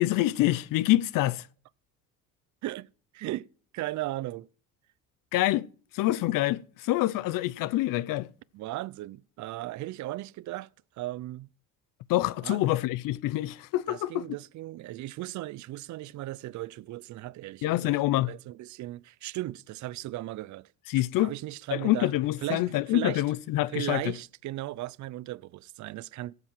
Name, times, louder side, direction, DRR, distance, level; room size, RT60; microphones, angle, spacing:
voice 1, 0.0-1.5 5.3-5.7 5.9-8.3 12.1-14.3 17.6-18.3 20.9-21.3 21.7-24.1, left 16 dB, 70° left, 0.6 m, -26 dB
voice 2, 3.1-3.5 3.7-4.5 8.5-10.7 11.0-11.5 12.4-12.6 13.9-18.0 18.3-20.7 21.2-22.1 22.4-23.2 23.7-26.3, right 16 dB, 55° right, 0.5 m, -36 dB
16.0 x 8.0 x 5.8 m
supercardioid pair, 90°, 34 cm